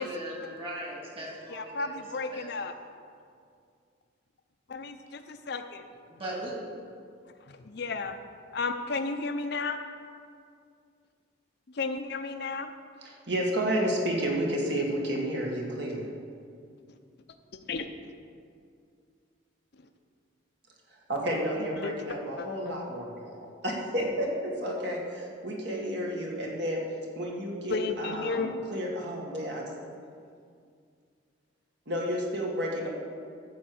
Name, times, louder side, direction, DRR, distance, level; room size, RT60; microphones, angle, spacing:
voice 1, 0.0-1.9 2.2-2.5 6.1-6.5, right 1 dB, 30° right, -3 dB, 2.4 m, -38 dB
voice 2, 1.5-2.7 4.7-5.8 7.5-8.2 8.5-9.8 11.7-12.7 16.9-17.0 17.7-17.9 21.6-21.9 22.4-22.8 27.7-28.5, left 4 dB, 55° left, 7 dB, 0.6 m, -33 dB
voice 3, 13.0-16.1 21.1-26.8 27.2-29.8 31.9-32.9, equal, 60° right, -2 dB, 1.9 m, -31 dB
13.5 x 4.7 x 7.8 m, 2.3 s
head